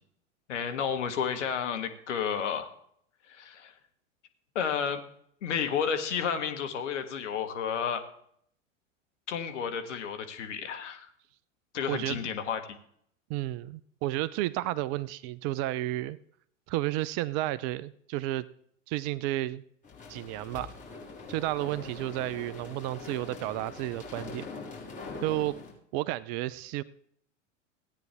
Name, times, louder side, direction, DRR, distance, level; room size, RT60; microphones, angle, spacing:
voice 1, 0.5-2.7 3.3-3.7 4.6-5.0 5.4-8.0 9.3-11.1 11.7-12.8, left 7 dB, 70° left, 7 dB, 1.7 m, -31 dB
voice 2, 11.9-12.2 13.3-16.2 16.7-18.5 18.9-19.6 20.1-20.7 21.3-24.5 25.2-25.6 25.9-26.8, right 16 dB, 40° right, 19 dB, 0.5 m, -32 dB
sound 1, 19.8-25.7, left 4 dB, 20° left, 5.1 m, -43 dB
16.5 x 9.4 x 3.5 m, 0.66 s
figure-of-eight pair, 90°, 38 cm